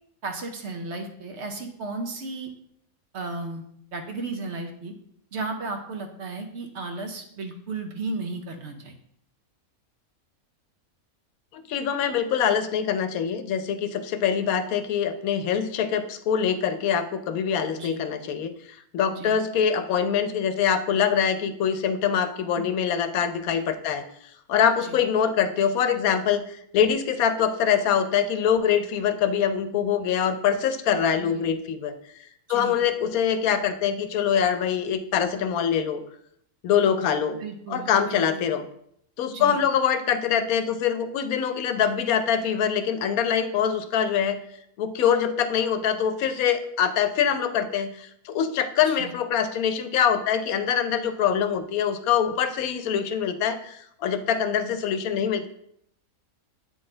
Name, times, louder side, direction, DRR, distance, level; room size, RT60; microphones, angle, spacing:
voice 1, 0.2-2.5 3.1-3.6 3.9-4.9 5.3-8.9 17.8-18.0 19.1-19.4 22.6-22.7 24.8-25.0 31.2-31.4 32.5-32.8 37.4-38.5 39.3-39.6 48.8-49.1, right 3 dB, 60° right, 4 dB, 0.9 m, -34 dB
voice 2, 11.5-18.5 18.9-24.0 24.5-31.9 32.5-36.0 36.6-37.4 37.7-38.6 39.2-44.4 44.8-55.5, left 8 dB, 85° left, 10 dB, 1.0 m, -24 dB
8.1 x 3.9 x 3.8 m, 0.72 s
omnidirectional pair, 1.5 m